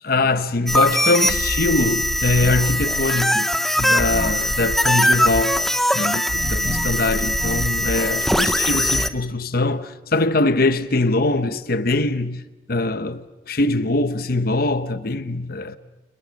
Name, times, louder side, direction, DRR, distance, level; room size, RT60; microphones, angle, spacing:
voice 1, 0.0-3.5 3.8-5.6 5.9-15.8, left 2 dB, 60° left, 1.0 m, -22 dB
sound 1, 0.7-9.1, equal, ahead, 0.8 m, -21 dB
29.5 x 29.5 x 5.3 m
head